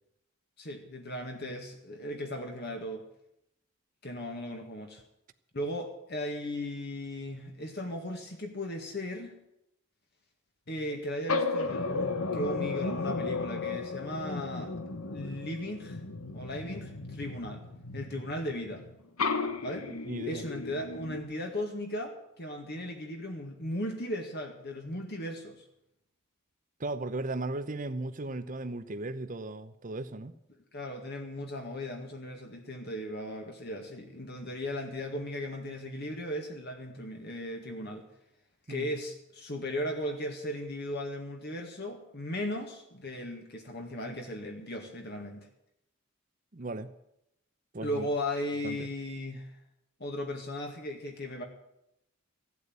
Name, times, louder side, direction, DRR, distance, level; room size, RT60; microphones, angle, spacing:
voice 1, 0.6-3.1 4.0-5.0 5.5-9.3 10.7-14.8 15.1-16.0 16.3-17.6 17.9-18.8 19.6-19.9 20.2-25.6 30.7-38.1 38.7-45.5 47.8-49.5 50.0-51.4, left 1 dB, 50° left, 3 dB, 1.9 m, -37 dB
sound 1, 10.7-10.9 11.3-18.9 19.2-21.2, left 4 dB, 85° left, 1.3 m, -34 dB
voice 2, 19.9-20.4 26.8-30.4 38.7-38.9 46.5-46.9 47.7-48.1 48.6-48.9, right 2 dB, 40° right, 10 dB, 0.8 m, -36 dB
15.5 x 8.3 x 9.4 m, 0.81 s
head